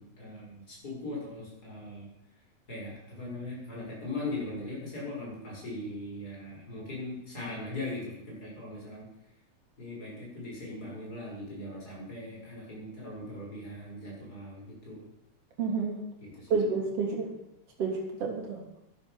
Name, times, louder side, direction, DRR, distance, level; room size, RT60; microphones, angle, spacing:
voice 1, 0.0-2.1 2.7-9.1 9.8-15.0 16.2-16.6, left 2 dB, 30° left, -3 dB, 6.0 m, -40 dB
voice 2, 15.6-16.0 16.5-17.3 17.8-18.6, right 4 dB, 50° right, 0 dB, 4.0 m, -29 dB
12.5 x 10.5 x 7.0 m, 0.83 s
omnidirectional pair, 3.4 m